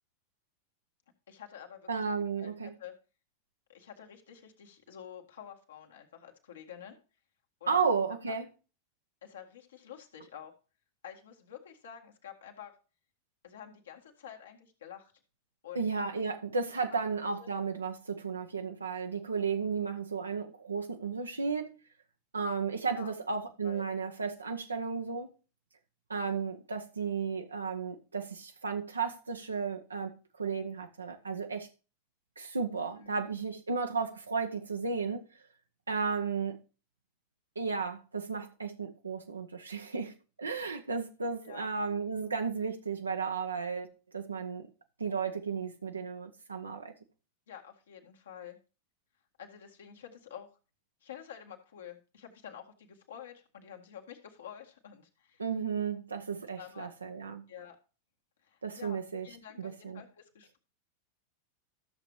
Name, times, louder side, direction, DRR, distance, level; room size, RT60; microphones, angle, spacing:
voice 1, 1.3-2.0 2.4-2.5 2.8-2.9 3.7-7.0 7.6-7.8 8.3-8.4 9.2-10.5 11.0-12.7 13.4-15.1 15.6-15.9 16.9-17.0 17.4-17.5 22.9-23.1 23.6-23.8 33.0-33.2 41.4-41.7 47.5-48.6 49.4-50.5 51.0-55.4 56.6-56.9 57.5-57.8 58.4-60.6, left 9 dB, 65° left, 1.8 m, -49 dB
voice 2, 1.9-2.7 7.7-8.5 15.7-21.8 22.3-25.3 26.1-31.7 32.4-35.2 35.9-36.6 37.6-44.7 45.0-46.9 55.4-57.4 58.6-59.3 59.6-60.0, right 5 dB, 75° right, 0.8 m, -34 dB
13.5 x 7.0 x 3.1 m
figure-of-eight pair, 90°, 0 cm